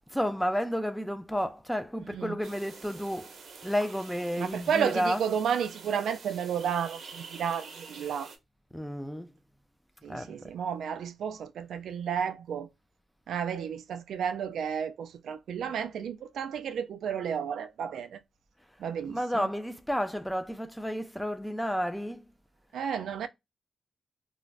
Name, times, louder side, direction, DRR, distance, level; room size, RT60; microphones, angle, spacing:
voice 1, 0.1-3.3 3.6-5.3 8.7-9.3 10.1-10.5 19.1-22.2, equal, 5° left, 0.4 m, -31 dB
voice 2, 2.1-2.4 4.4-8.3 10.0-12.7 13.3-18.2 18.8-19.5 22.7-23.3, right 7 dB, 85° right, 0.3 m, -32 dB
sound 1, 2.4-8.4, right 4 dB, 70° right, 0.7 m, -47 dB
2.4 x 2.1 x 3.2 m
cardioid pair, 85°, 0 cm